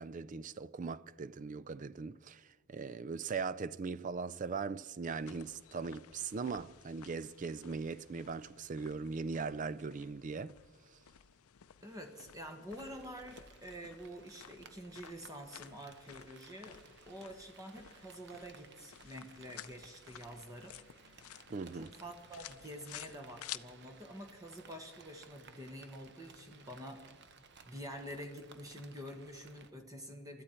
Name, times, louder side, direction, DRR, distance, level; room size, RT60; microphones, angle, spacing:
voice 1, 0.0-10.6 21.5-21.9, right 4 dB, 35° right, 0.3 m, -40 dB
sound 1, 5.1-23.6, left 11 dB, 75° left, 0.5 m, -54 dB
voice 2, 11.8-16.8 17.1-20.8 21.8-27.0 27.6-30.4, equal, 15° right, 1.2 m, -48 dB
Rain, 12.7-29.7, right 5 dB, 50° right, 0.9 m, -59 dB
21.0 x 13.5 x 4.4 m
head